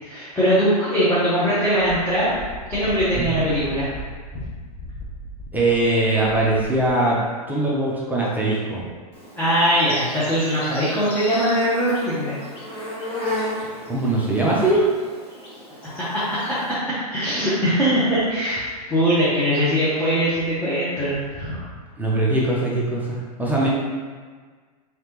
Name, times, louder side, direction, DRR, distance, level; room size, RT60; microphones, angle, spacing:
voice 1, 0.0-2.4 2.7-3.9 4.3-4.4 9.3-12.4 12.7-12.9 14.6-14.7 16.1-16.4 17.1-21.6, equal, 10° left, -12 dB, 0.9 m, -21 dB
Wind, 1.7-7.0, equal, 45° left, 0.7 m, -37 dB
voice 2, 5.5-7.2 7.5-8.8 13.9-14.8 22.0-23.7, right 2 dB, 10° right, -5 dB, 0.5 m, -21 dB
Insect, 9.1-16.7, left 1 dB, 25° left, 1.2 m, -34 dB
3.3 x 3.3 x 3.0 m, 1.5 s
hypercardioid pair, 120°, 20 cm